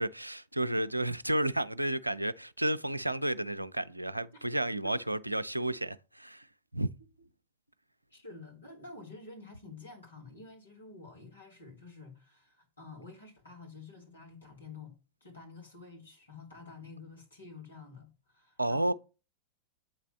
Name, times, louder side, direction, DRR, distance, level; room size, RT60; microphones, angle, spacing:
voice 1, 0.0-6.5 6.7-6.9 18.6-18.9, right 1 dB, 85° right, 0.4 m, -31 dB
voice 2, 8.1-18.9, left 3 dB, 80° left, 3.0 m, -50 dB
8.8 x 4.1 x 5.7 m
figure-of-eight pair, 90°, 0 cm